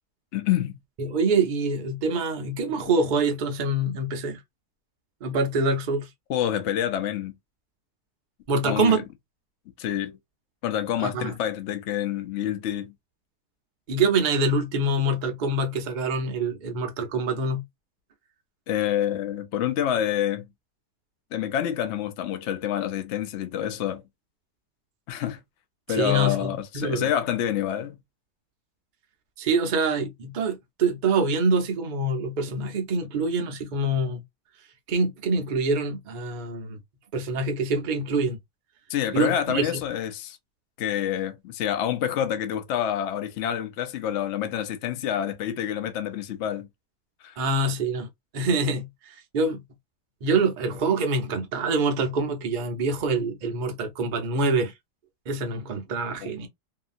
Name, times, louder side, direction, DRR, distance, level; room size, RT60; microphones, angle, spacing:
voice 1, 0.3-0.8 6.3-7.3 8.6-9.0 9.8-10.2 10.6-12.9 18.7-20.5 21.3-24.0 25.1-25.4 25.9-28.0 38.9-40.4 40.8-46.7 47.2-47.4 56.2-56.3, left 10 dB, 65° left, 0.7 m, -27 dB
voice 2, 1.0-4.4 5.2-6.1 8.5-9.0 11.0-11.3 13.9-17.6 25.9-27.1 29.4-34.2 34.9-36.8 37.1-38.4 39.1-39.8 47.4-48.1 48.3-48.9 49.3-49.6 50.2-54.7 55.3-56.5, right 3 dB, 75° right, 0.4 m, -25 dB
2.7 x 2.6 x 2.5 m
omnidirectional pair, 1.8 m